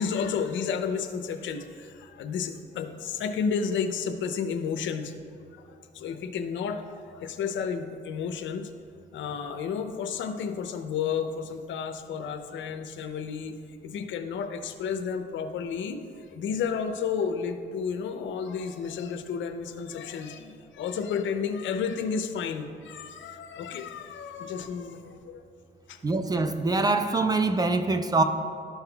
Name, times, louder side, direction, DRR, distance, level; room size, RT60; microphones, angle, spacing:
voice 1, 0.0-5.1 5.5-8.7 9.1-13.6 13.8-25.4 25.9-26.0, left 6 dB, 70° left, 7 dB, 0.6 m, -32 dB
voice 2, 26.0-28.2, right 3 dB, 20° right, 8 dB, 0.4 m, -24 dB
12.5 x 5.6 x 2.3 m, 2.5 s
cardioid pair, 90°, 20 cm